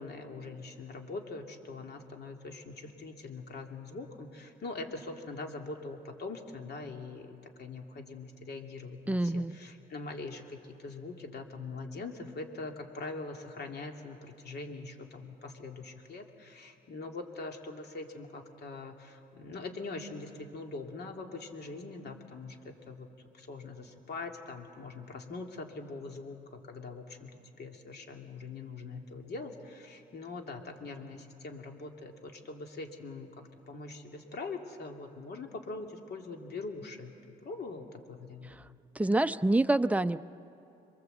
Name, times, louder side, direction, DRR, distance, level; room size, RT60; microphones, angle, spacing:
voice 1, 0.0-23.1 23.3-27.3 27.6-33.3 33.7-37.1 37.4-38.5, left 3 dB, 55° left, 3 dB, 2.7 m, -42 dB
voice 2, 9.1-9.5 38.5-38.6 39.0-40.2, right 2 dB, 5° right, 10 dB, 0.6 m, -27 dB
27.0 x 22.5 x 8.0 m, 2.8 s
cardioid pair, 90°, 20 cm